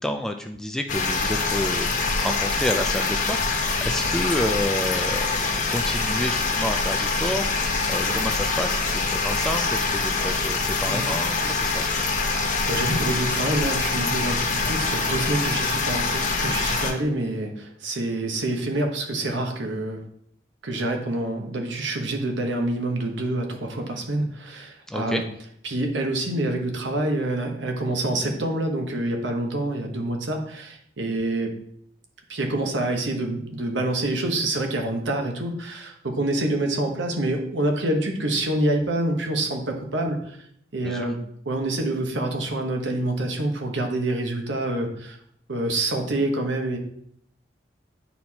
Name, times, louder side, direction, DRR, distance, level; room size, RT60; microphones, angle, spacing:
voice 1, 0.0-12.1 24.9-25.2 40.8-41.1, left 1 dB, 5° left, 5 dB, 0.3 m, -30 dB
sound 1, 0.9-16.9, left 4 dB, 40° left, 0.7 m, -25 dB
voice 2, 12.7-20.0 20.6-25.2 25.6-31.6 32.3-40.4 40.7-41.2 41.5-45.2 45.5-46.8, right 1 dB, 80° right, 3 dB, 1.1 m, -27 dB
9.0 x 4.3 x 2.9 m, 0.70 s
head